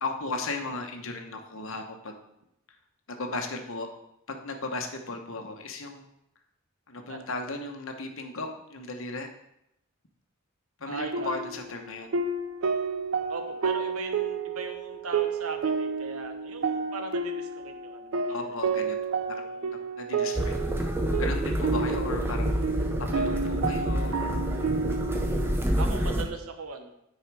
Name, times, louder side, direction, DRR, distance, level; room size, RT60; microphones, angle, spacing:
voice 1, 0.0-2.1 3.1-3.9 4.3-6.1 6.9-9.3 10.8-12.1 18.3-19.4 20.0-20.5 21.2-22.6 23.1-24.5, left 3 dB, 65° left, 4 dB, 1.0 m, -36 dB
voice 2, 10.9-11.4 13.3-18.4 19.5-19.8 25.7-26.9, right 4 dB, 90° right, 6 dB, 1.0 m, -39 dB
sound 1, 11.0-25.6, right 4 dB, 70° right, 0.5 m, -31 dB
sound 2, 20.4-26.2, equal, 10° right, 0.7 m, -28 dB
9.2 x 4.7 x 4.7 m, 0.81 s
head